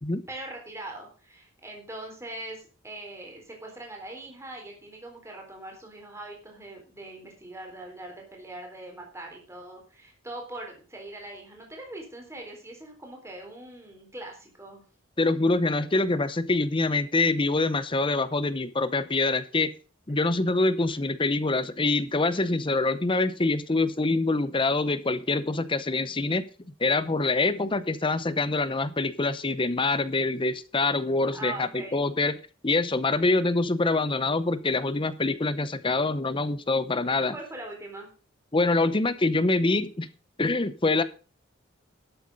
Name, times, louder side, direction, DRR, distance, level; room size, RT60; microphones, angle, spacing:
voice 1, 0.3-14.8 31.3-32.0 37.3-38.1, right 2 dB, 15° right, 1 dB, 3.9 m, -41 dB
voice 2, 15.2-19.7 20.1-26.4 26.8-32.3 32.6-37.4 38.5-40.1 40.4-41.0, left 3 dB, 25° left, 14 dB, 0.7 m, -25 dB
12.5 x 8.0 x 5.4 m, 0.36 s
head